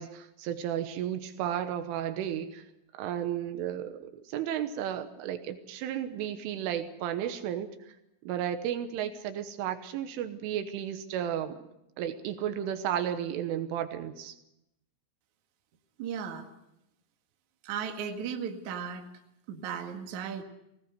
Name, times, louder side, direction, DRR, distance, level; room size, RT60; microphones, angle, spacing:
voice 1, 0.0-2.7 3.0-7.7 8.3-11.6 12.0-14.4, right 10 dB, 75° right, 9 dB, 3.5 m, -33 dB
voice 2, 16.0-16.5 17.6-19.1 19.5-20.4, right 7 dB, 55° right, 4 dB, 2.3 m, -36 dB
22.5 x 18.0 x 8.0 m, 0.84 s
omnidirectional pair, 6.0 m